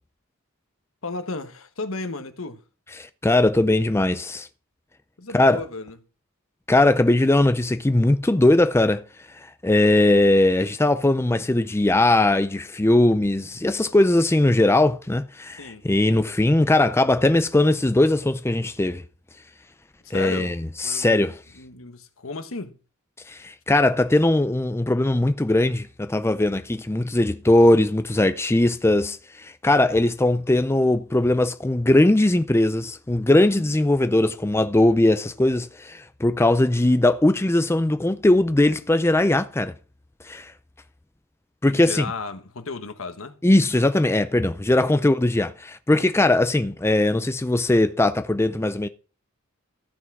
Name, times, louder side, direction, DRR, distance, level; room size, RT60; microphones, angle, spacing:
voice 1, 1.0-2.6 5.2-6.0 15.6-16.3 20.0-20.6 20.8-21.3 21.5-22.8 41.6-43.4 44.9-45.0, left 3 dB, 70° left, 1.2 m, -34 dB
voice 2, 3.0-4.5 5.3-5.6 6.7-9.0 9.3-19.0 20.1-20.5 20.8-21.3 23.3-39.7 40.2-40.5 41.6-42.0 43.4-48.9, left 1 dB, 10° left, 0.5 m, -20 dB
14.0 x 6.0 x 4.7 m
head